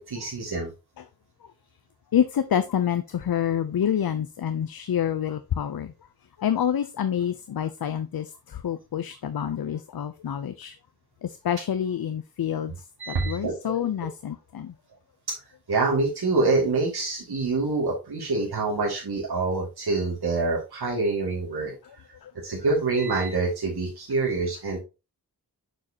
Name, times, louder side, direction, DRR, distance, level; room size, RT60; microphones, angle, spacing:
voice 1, 0.1-0.7 13.0-13.7 15.7-21.7 22.4-24.8, right 3 dB, 85° right, 2.4 m, -26 dB
voice 2, 2.1-5.9 6.4-10.7 11.2-12.7 13.1-14.7 21.8-21.9 22.2-22.3, left 9 dB, 70° left, 0.6 m, -27 dB
6.6 x 6.3 x 2.8 m
wide cardioid pair, 75°, 37 cm